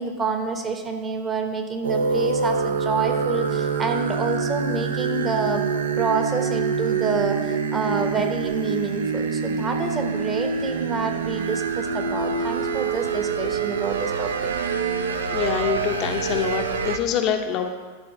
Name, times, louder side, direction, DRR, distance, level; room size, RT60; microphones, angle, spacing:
voice 1, 0.0-5.7 6.0-14.5, right 4 dB, 20° right, 5 dB, 0.9 m, -28 dB
sound 1, 1.8-17.0, right 5 dB, 65° right, 0.5 m, -26 dB
voice 2, 15.3-17.7, left 8 dB, 35° left, 5 dB, 0.6 m, -25 dB
11.0 x 3.9 x 5.9 m, 1.4 s
figure-of-eight pair, 90°, 0 cm